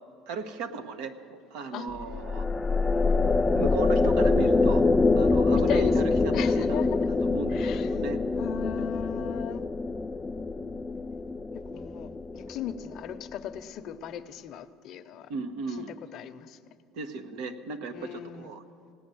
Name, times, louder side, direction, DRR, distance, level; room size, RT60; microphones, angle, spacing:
voice 1, 0.3-2.5 3.5-4.8 5.1-6.8 7.2-8.2 15.3-15.9 16.9-18.6, right 4 dB, 80° right, 8 dB, 1.0 m, -36 dB
sound 1, 1.9-13.4, left 3 dB, 15° left, 0.3 m, -25 dB
voice 2, 5.5-7.1 7.5-7.9 8.4-9.6 11.7-15.3 16.1-16.6 17.9-18.5, left 10 dB, 50° left, 10 dB, 0.7 m, -37 dB
17.5 x 9.4 x 7.7 m, 2.5 s
cardioid pair, 125°, 0 cm